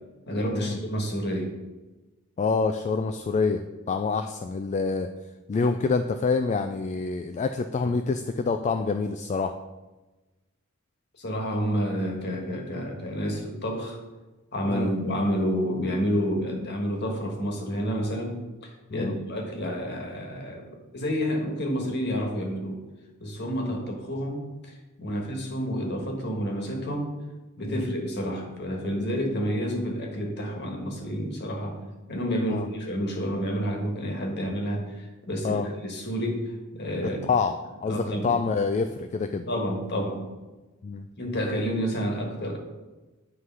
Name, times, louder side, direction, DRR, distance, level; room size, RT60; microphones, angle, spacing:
voice 1, 0.3-1.5 11.2-14.0 14.5-22.8 23.2-27.1 27.6-31.8 32.1-37.2 37.8-38.4 39.5-40.3 41.2-42.6, equal, 55° left, 2 dB, 1.4 m, -29 dB
voice 2, 2.4-3.6 3.9-5.1 5.5-9.5 14.7-14.9 18.9-19.2 25.1-25.3 27.7-27.8 32.5-32.7 35.4-35.7 37.2-37.5 37.8-39.5 40.8-41.1, left 4 dB, 35° left, 7 dB, 0.3 m, -26 dB
9.5 x 3.2 x 5.6 m, 1.1 s
head